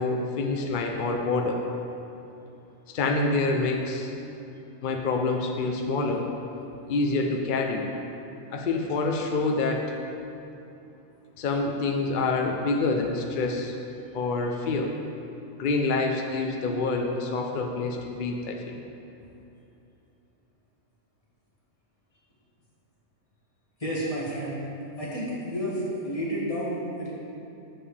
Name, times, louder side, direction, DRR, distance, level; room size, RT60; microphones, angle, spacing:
voice 1, 0.0-1.6 2.9-4.1 4.8-6.3 6.9-7.9 8.5-9.8 11.4-13.7 14.1-14.9 15.6-18.8, left 3 dB, 55° left, 2 dB, 0.5 m, -27 dB
voice 2, 23.8-24.6 25.0-27.1, equal, 25° left, -7 dB, 1.6 m, -30 dB
7.6 x 7.4 x 3.3 m, 2.7 s
omnidirectional pair, 1.4 m